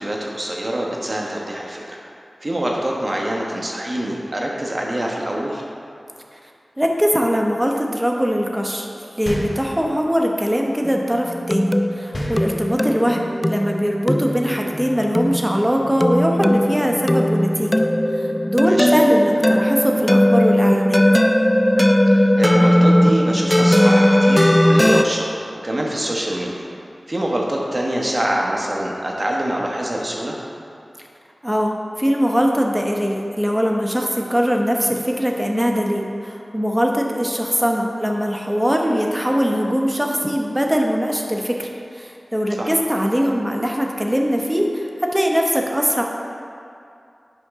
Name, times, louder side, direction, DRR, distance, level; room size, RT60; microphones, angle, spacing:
voice 1, 0.0-2.0 2.4-5.6 18.6-18.9 22.1-25.3 25.6-26.7 27.1-30.4 42.6-42.7, right 1 dB, 50° right, -2 dB, 1.1 m, -25 dB
voice 2, 6.8-17.8 18.1-21.0 31.4-46.0, equal, 15° right, 1 dB, 0.9 m, -21 dB
sound 1, 9.3-10.2 12.1-13.1, equal, 50° left, 1.5 m, -30 dB
sound 2, 10.8-25.0, equal, 15° left, 0.3 m, -18 dB
8.3 x 5.3 x 3.6 m, 2.5 s
cardioid pair, 45°, 0 cm